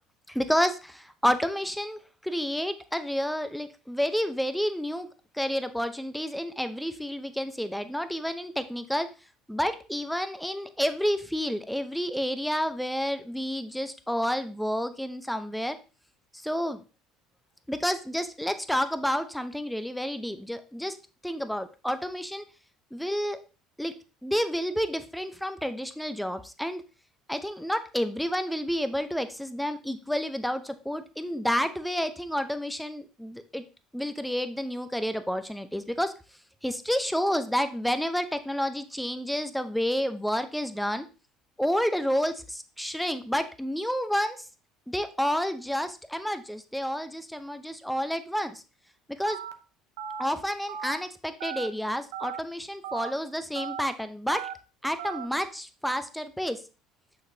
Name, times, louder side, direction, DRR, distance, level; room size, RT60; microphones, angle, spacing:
voice 1, 0.3-5.1 5.3-9.1 9.5-15.8 16.3-16.8 17.7-21.0 21.2-22.5 22.9-23.4 23.8-23.9 24.2-26.8 27.3-33.6 33.9-36.1 36.6-41.1 41.6-44.5 44.9-48.6 49.1-49.4 50.2-54.5 54.8-56.6, equal, ahead, 10 dB, 0.8 m, -30 dB
Telephone, 49.3-49.5 50.0-50.2 50.7-51.0 51.4-51.7 52.1-52.4 52.8-53.1 53.6-53.8 54.3-54.5 55.0-55.3, right 9 dB, 80° right, 0.6 m, -36 dB
6.4 x 5.8 x 2.8 m, 0.33 s
hypercardioid pair, 70°, 0 cm